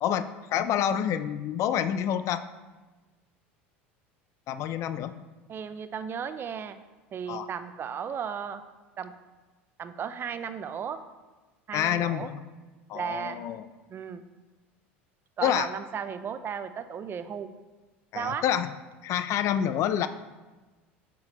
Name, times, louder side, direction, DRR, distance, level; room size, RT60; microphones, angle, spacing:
voice 1, 0.0-2.4 4.5-5.1 7.3-7.5 11.7-12.4 12.9-13.7 15.4-15.7 18.1-18.7 19.0-20.1, left 10 dB, 50° left, 12 dB, 0.4 m, -28 dB
voice 2, 5.5-6.8 7.1-8.6 9.0-9.1 9.8-11.0 11.7-12.3 12.9-13.4 13.9-14.2 15.4-17.5 18.1-18.4, right 7 dB, 35° right, 11 dB, 0.5 m, -35 dB
8.5 x 6.1 x 3.0 m, 1.2 s
hypercardioid pair, 85°, 6 cm